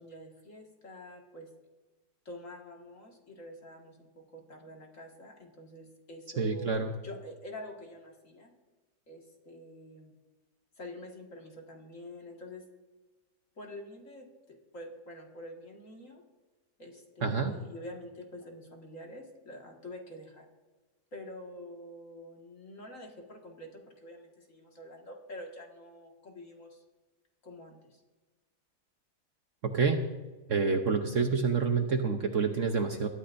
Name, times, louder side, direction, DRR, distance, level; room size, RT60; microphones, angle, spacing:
voice 1, 0.0-1.5 2.3-8.5 9.1-10.1 10.8-12.7 13.6-16.2 16.8-20.5 21.1-26.8 27.4-28.0, left 1 dB, 50° left, 0 dB, 2.2 m, -47 dB
voice 2, 6.4-6.9 17.2-17.5 29.6-30.0 30.5-33.1, right 5 dB, 55° right, 5 dB, 1.1 m, -28 dB
21.5 x 13.0 x 2.6 m, 1.2 s
omnidirectional pair, 1.8 m